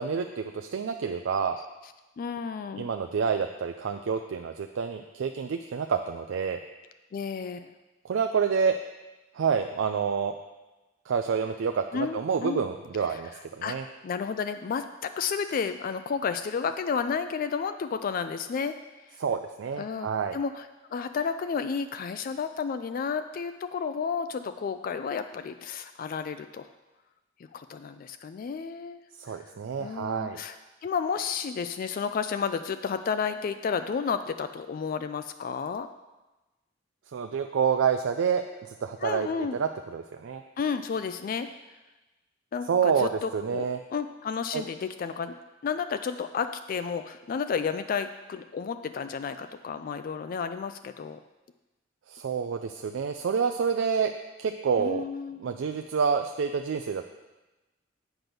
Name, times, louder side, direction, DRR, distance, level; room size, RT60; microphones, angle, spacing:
voice 1, 0.0-1.6 2.8-6.6 8.0-8.8 9.3-10.4 11.1-13.9 19.2-20.4 29.2-30.4 37.1-40.4 42.7-43.8 44.5-44.6 52.1-54.1 54.4-55.0 55.4-57.0, right 6 dB, 80° right, 6 dB, 0.4 m, -28 dB
voice 2, 2.2-2.9 7.1-7.7 11.9-12.6 13.1-13.2 13.6-13.8 14.0-18.7 19.8-26.7 27.5-29.0 29.3-29.4 29.8-30.5 30.8-35.9 39.0-39.6 40.6-41.5 42.5-45.4 45.6-51.2 54.8-55.6, left 6 dB, 45° left, 9 dB, 0.3 m, -32 dB
8.0 x 6.0 x 5.2 m, 1.1 s
head